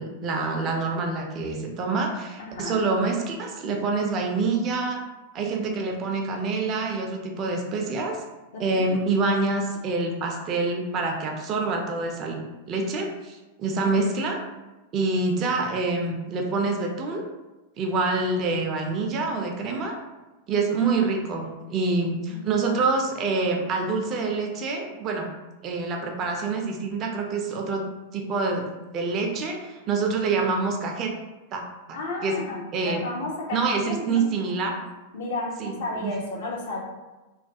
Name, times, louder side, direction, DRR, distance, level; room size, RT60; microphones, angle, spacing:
voice 1, 0.0-5.0 5.3-8.2 8.6-12.4 12.7-14.4 14.9-17.2 17.8-20.0 20.5-25.3 25.6-27.8 28.1-28.6 28.9-31.1 31.5-31.6 31.9-32.4 32.7-33.0 33.5-34.8 35.6-35.7 36.0-36.1, right 3 dB, 35° right, 2 dB, 0.4 m, -26 dB
voice 2, 2.4-2.8 8.5-8.9 22.2-22.5 31.9-33.6 33.9-34.2 35.1-36.8, left 2 dB, 55° left, -2 dB, 0.6 m, -33 dB
2.3 x 2.1 x 2.5 m, 1.1 s
figure-of-eight pair, 95°, 0 cm